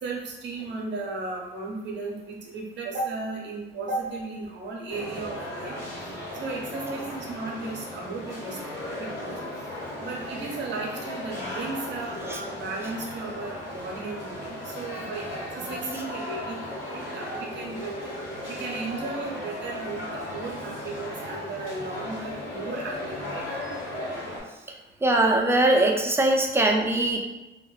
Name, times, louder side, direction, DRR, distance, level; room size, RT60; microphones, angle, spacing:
voice 1, 0.0-2.1 2.5-5.7 6.3-8.6 9.2-9.4 10.0-18.1 18.5-23.4, right 3 dB, 60° right, -1 dB, 0.6 m, -35 dB
sound 1, 4.9-24.4, left 1 dB, 85° left, 1.0 m, -36 dB
voice 2, 25.0-27.2, right 2 dB, 10° right, 1 dB, 0.4 m, -21 dB
2.7 x 2.0 x 2.3 m, 1.0 s
cardioid pair, 90°, 20 cm